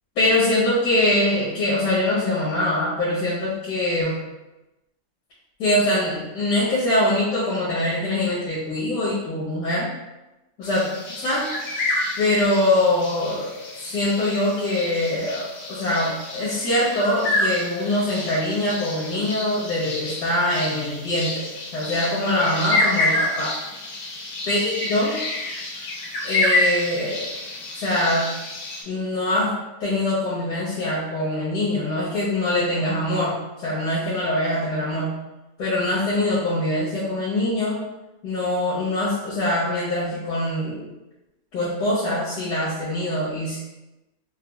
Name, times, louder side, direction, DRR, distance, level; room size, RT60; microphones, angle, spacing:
voice 1, 0.2-4.1 5.6-9.9 10.6-10.9 11.2-11.5 12.1-21.5 21.7-23.5 24.5-25.2 26.2-27.2 27.7-28.2 28.8-29.5 29.8-33.3 33.6-35.1 35.6-37.8 38.2-40.9 41.5-43.6, left 1 dB, 80° left, -9 dB, 1.5 m, -23 dB
sound 1, 10.6-28.8, left 2 dB, 65° left, 1.0 m, -28 dB
5.0 x 2.2 x 2.2 m, 1.0 s
omnidirectional pair, 1.7 m